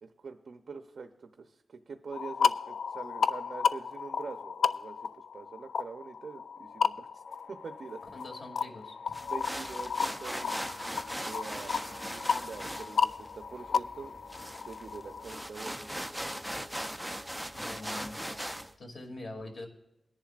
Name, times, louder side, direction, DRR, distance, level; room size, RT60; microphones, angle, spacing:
voice 1, 0.0-7.2 7.5-8.0 9.2-10.6 11.2-11.8 12.1-14.1 14.6-16.1, right 4 dB, 60° right, 7 dB, 0.7 m, -45 dB
sound 1, 2.1-15.5, left 6 dB, 80° left, 0.3 m, -33 dB
sound 2, 7.3-18.7, left 1 dB, 15° left, 1.2 m, -55 dB
voice 2, 8.1-8.9 17.5-18.2 18.8-19.7, left 2 dB, 50° left, 2 dB, 2.6 m, -43 dB
sound 3, 9.1-18.7, equal, ahead, 0.5 m, -39 dB
21.5 x 10.5 x 2.5 m, 0.87 s
wide cardioid pair, 135°, 0 cm